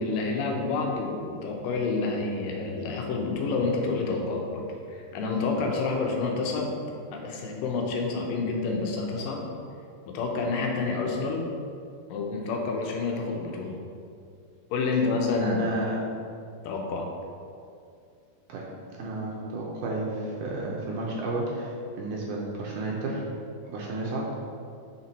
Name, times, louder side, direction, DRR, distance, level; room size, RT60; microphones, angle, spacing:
voice 1, 0.0-6.7 7.1-9.4 10.1-11.4 12.1-13.8 14.7-15.7 16.6-17.1, left 3 dB, 80° left, 1 dB, 2.3 m, -28 dB
voice 2, 15.4-16.0 18.5-18.6 19.0-23.3 23.7-24.2, right 2 dB, 75° right, -3 dB, 2.1 m, -32 dB
5.7 x 4.4 x 4.0 m, 2.4 s
omnidirectional pair, 3.9 m